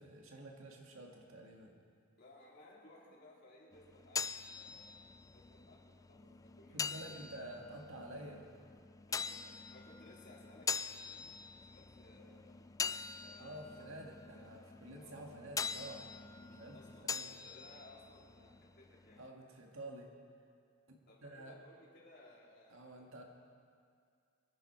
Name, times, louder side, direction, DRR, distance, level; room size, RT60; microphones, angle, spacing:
voice 1, 0.0-1.8 6.7-8.5 13.4-16.2 16.4-16.8 17.0-17.3 19.2-20.1 21.2-21.6 22.7-23.2, right 1 dB, 75° right, 1 dB, 1.9 m, -50 dB
voice 2, 2.2-7.3 9.1-11.3 11.6-12.6 13.2-14.5 15.0-15.2 16.7-19.2 21.1-23.2, left 1 dB, 55° left, -5 dB, 4.0 m, -61 dB
sound 1, 3.7-19.3, left 6 dB, 15° left, 0.3 m, -44 dB
25.0 x 10.5 x 4.5 m, 2.2 s
head